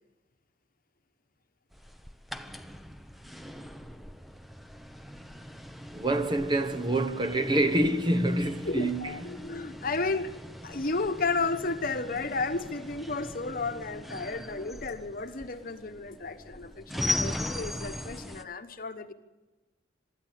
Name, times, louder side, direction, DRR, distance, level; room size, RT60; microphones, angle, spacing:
sound 1, 1.7-18.4, left 1 dB, ahead, 0.8 m, -39 dB
voice 1, 5.9-9.4, right 1 dB, 25° right, 1.0 m, -27 dB
voice 2, 8.6-10.3 10.6-19.1, left 3 dB, 45° left, 1.2 m, -33 dB
23.5 x 13.0 x 8.4 m
head